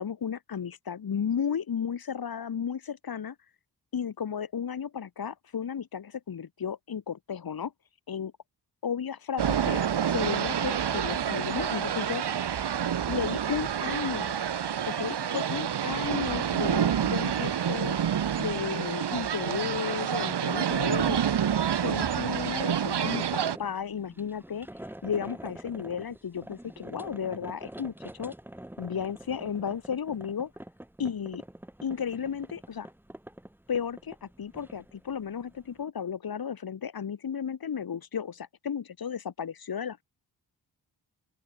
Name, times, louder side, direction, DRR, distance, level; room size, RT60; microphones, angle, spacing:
voice 1, 0.0-3.4 3.9-7.7 8.1-8.3 8.8-12.2 13.1-14.4 14.9-18.0 18.4-21.2 21.8-24.7 25.0-28.3 28.8-30.5 31.0-31.4 31.8-32.9 33.7-40.0, left 7 dB, 60° left, 7.5 m, -34 dB
sound 1, 9.4-23.6, right 8 dB, 75° right, 4.9 m, -28 dB
sound 2, 23.0-35.8, right 1 dB, 5° right, 5.7 m, -46 dB
open air
wide cardioid pair, 175°, 41 cm